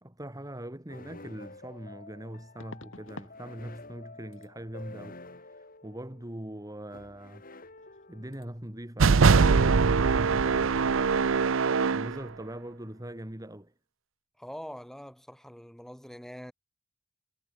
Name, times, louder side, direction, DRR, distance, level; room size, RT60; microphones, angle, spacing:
voice 1, 0.0-7.4 8.1-10.9 11.9-13.7, right 1 dB, 20° right, 2.3 m, -42 dB
sound 1, 0.9-8.6, left 2 dB, 45° left, 7.5 m, -49 dB
sound 2, 1.1-1.2 2.6-3.4 3.7-4.1 4.3-4.5 7.4-7.6 7.8-8.1 8.3-8.5, left 2 dB, 75° left, 4.2 m, -48 dB
sound 3, 9.0-12.2, right 5 dB, 80° right, 0.6 m, -22 dB
voice 2, 14.4-16.5, equal, ahead, 3.6 m, -44 dB
head